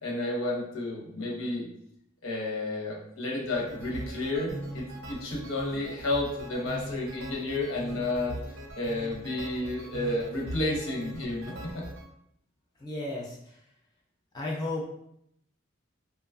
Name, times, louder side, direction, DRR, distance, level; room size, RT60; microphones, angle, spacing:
voice 1, 0.0-1.7 2.2-8.4 8.8-11.8, left 2 dB, 90° left, -2 dB, 0.8 m, -31 dB
sound 1, 3.4-12.1, right 1 dB, 80° right, 0.5 m, -41 dB
voice 2, 12.8-13.6 14.3-14.8, left 2 dB, 20° left, -3 dB, 0.3 m, -34 dB
2.8 x 2.2 x 2.4 m, 0.73 s
head